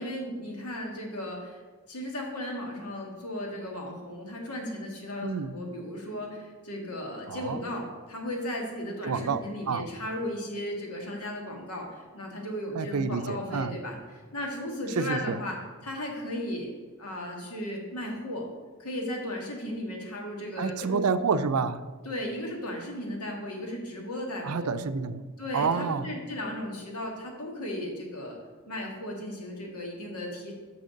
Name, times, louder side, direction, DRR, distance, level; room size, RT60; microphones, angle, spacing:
voice 1, 0.0-1.6 1.9-15.6 15.8-16.7 17.0-18.5 18.8-21.0 22.0-24.7 25.4-28.4 28.7-30.5, left 1 dB, 85° left, 1 dB, 1.9 m, -35 dB
voice 2, 5.2-5.6 7.3-7.6 9.0-9.4 9.7-9.9 12.7-13.8 15.0-15.4 20.6-21.8 24.4-25.3 25.5-26.1, right 5 dB, 75° right, 12 dB, 0.5 m, -28 dB
6.4 x 6.1 x 6.4 m, 1.4 s
head